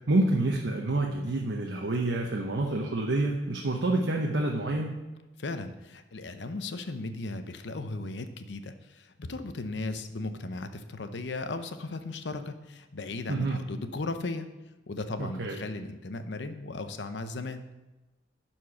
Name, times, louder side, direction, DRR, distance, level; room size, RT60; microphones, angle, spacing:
voice 1, 0.1-4.9 13.3-13.6 15.2-15.6, right 2 dB, 85° right, 0 dB, 0.9 m, -28 dB
voice 2, 5.4-14.5 14.9-17.6, left 2 dB, 75° left, 9 dB, 0.7 m, -36 dB
11.0 x 4.5 x 5.7 m, 1.1 s
head